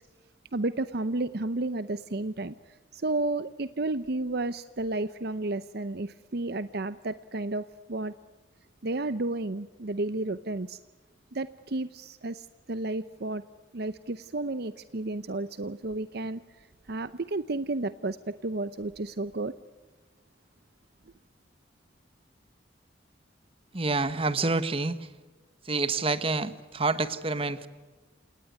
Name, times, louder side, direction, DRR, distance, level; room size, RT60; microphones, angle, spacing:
voice 1, 0.5-2.5 2.9-8.1 8.8-10.8 11.3-13.4 13.7-16.4 16.9-19.5, right 2 dB, 55° right, 13 dB, 0.8 m, -32 dB
voice 2, 23.7-25.1 25.6-27.7, right 3 dB, 30° right, 13 dB, 1.4 m, -28 dB
28.5 x 19.0 x 9.4 m, 1.3 s
head